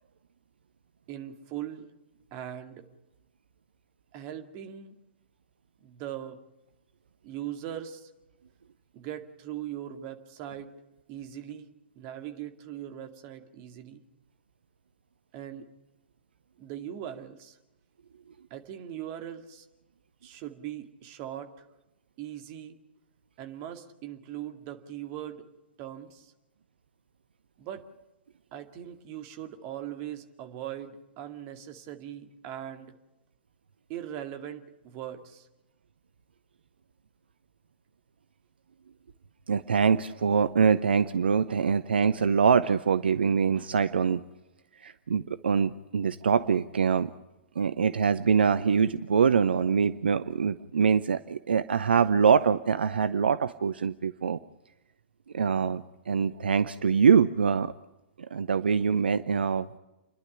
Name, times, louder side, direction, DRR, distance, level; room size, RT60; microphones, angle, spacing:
voice 1, 1.1-1.9 2.3-2.9 4.1-4.9 5.8-6.4 7.2-8.1 8.9-10.7 11.1-11.7 12.0-14.0 15.3-15.7 16.6-17.6 18.5-19.7 20.2-21.6 22.2-22.8 23.4-25.4 25.8-26.3 27.6-27.8 28.5-32.9 33.9-35.5, right 11 dB, 35° right, 6 dB, 2.3 m, -40 dB
voice 2, 39.5-44.2 44.8-47.1 47.6-54.4 55.3-57.7 58.3-59.7, right 6 dB, 70° right, 13 dB, 0.7 m, -24 dB
29.5 x 11.5 x 9.9 m, 0.98 s
figure-of-eight pair, 110°, 6 cm